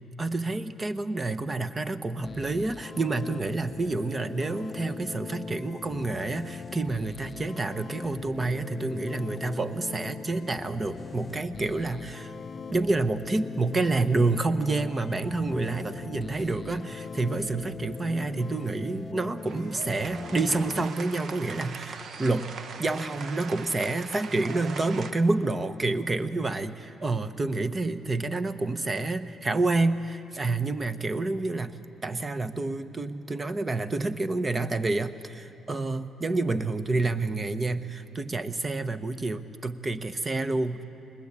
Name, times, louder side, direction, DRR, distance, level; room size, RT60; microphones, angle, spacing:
voice 1, 0.2-12.3 12.7-40.8, right 3 dB, 25° right, 12 dB, 0.9 m, -28 dB
sound 1, 2.2-20.9, left 5 dB, 40° left, 0.4 m, -40 dB
sound 2, 19.4-25.1, right 5 dB, 55° right, 1.0 m, -41 dB
20.5 x 20.5 x 8.5 m, 2.7 s
cardioid pair, 90°, 0 cm